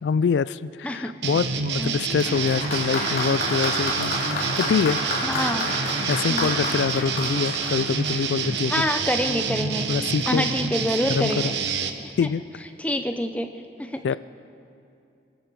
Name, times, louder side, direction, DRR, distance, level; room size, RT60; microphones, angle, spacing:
voice 1, 0.0-5.0 6.1-8.7 9.9-10.5 11.1-11.3 12.2-12.4 14.0-14.2, left 6 dB, 80° left, 18 dB, 0.3 m, -25 dB
sound 1, 1.2-11.9, right 5 dB, 75° right, 0.9 m, -28 dB
Applause, 2.2-8.6 9.5-9.6, left 1 dB, 50° left, 3.3 m, -30 dB
voice 2, 5.2-5.7 6.3-6.5 8.7-9.9 10.3-11.5 12.2-12.3 12.8-13.5 13.8-14.0, left 1 dB, 10° left, 7 dB, 0.6 m, -26 dB
22.5 x 13.0 x 4.7 m, 2.6 s
head